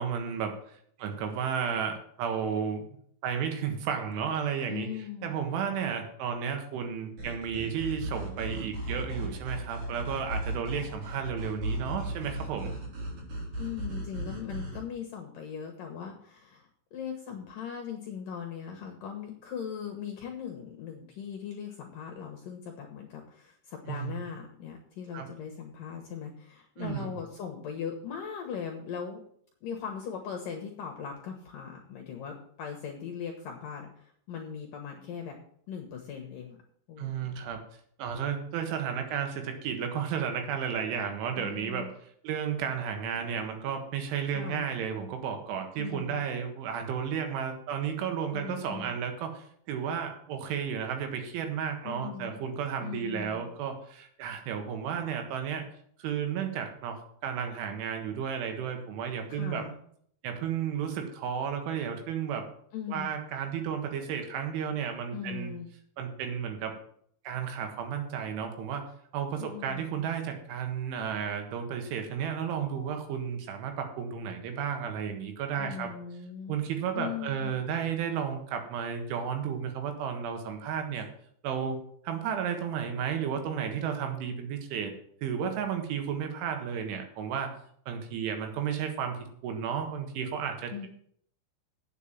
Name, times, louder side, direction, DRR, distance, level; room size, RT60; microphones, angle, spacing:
voice 1, 0.0-2.9 3.2-4.9 5.2-12.7 23.9-24.2 25.1-25.3 26.8-27.1 37.0-37.6 38.0-41.9 42.2-55.7 56.0-59.7 60.2-62.5 62.9-65.5 66.0-66.8 67.3-68.9 69.1-75.9 76.5-81.1 81.4-81.8 82.0-84.9 85.2-87.6 87.9-90.9, right 7 dB, 80° right, 5 dB, 4.0 m, -33 dB
voice 2, 4.7-5.3 13.6-29.2 29.6-35.4 35.7-36.6 36.9-37.3 41.4-41.9 44.3-44.7 45.8-46.2 48.3-49.0 51.8-52.4 52.8-53.5 59.3-59.7 62.7-63.1 65.1-65.7 69.4-70.0 75.6-76.6 76.9-77.5 90.7-90.9, left 7 dB, 70° left, 2 dB, 2.2 m, -39 dB
sound 1, 7.2-14.8, right 1 dB, 50° right, 4.8 m, -36 dB
9.2 x 7.3 x 7.3 m, 0.64 s
omnidirectional pair, 5.5 m